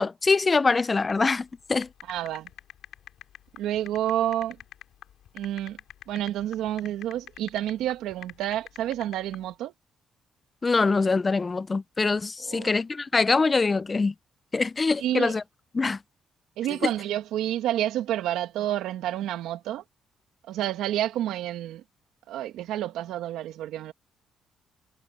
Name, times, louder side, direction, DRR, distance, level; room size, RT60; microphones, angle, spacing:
voice 1, 0.0-1.9 10.6-14.1 14.5-15.4 15.7-16.0, left 4 dB, 30° left, 0.5 m, -24 dB
sound 1, 1.1-9.4, left 11 dB, 75° left, 6.8 m, -45 dB
voice 2, 2.1-2.5 3.6-4.6 5.3-5.8 6.1-9.7 12.4-12.7 15.0-15.3 16.6-19.8 20.5-21.8 22.3-23.9, right 12 dB, 90° right, 2.0 m, -29 dB
cardioid pair, 90°, 0 cm